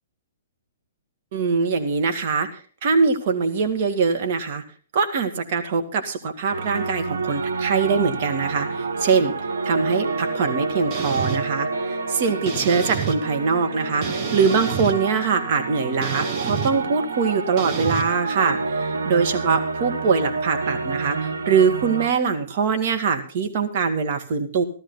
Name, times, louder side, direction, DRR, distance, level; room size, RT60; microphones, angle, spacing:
voice 1, 1.3-4.6 4.9-9.3 9.6-24.6, right 5 dB, 50° right, 6 dB, 2.2 m, -23 dB
sound 1, 6.5-22.1, right 4 dB, 80° right, 1.5 m, -29 dB
sound 2, 10.9-11.4 12.5-13.2 14.0-15.0 16.0-16.7 17.6-18.0, right 7 dB, 35° right, 2.0 m, -29 dB
15.0 x 13.0 x 4.1 m, 0.39 s
hypercardioid pair, 125°, 0 cm